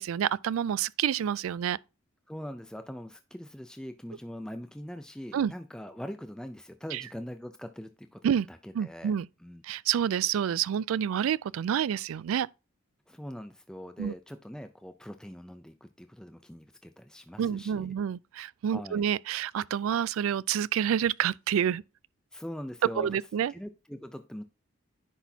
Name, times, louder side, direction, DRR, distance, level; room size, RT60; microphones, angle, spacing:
voice 1, 0.0-1.8 5.3-5.5 6.9-7.0 8.2-8.5 8.7-9.3 9.6-12.5 14.0-14.1 17.4-21.8 23.0-23.5, right 9 dB, 90° right, 0.3 m, -28 dB
voice 2, 2.3-8.2 8.5-9.1 9.4-9.6 13.1-17.9 18.7-19.0 22.3-23.2 23.5-24.4, equal, 5° left, 0.4 m, -42 dB
10.0 x 6.0 x 2.7 m
head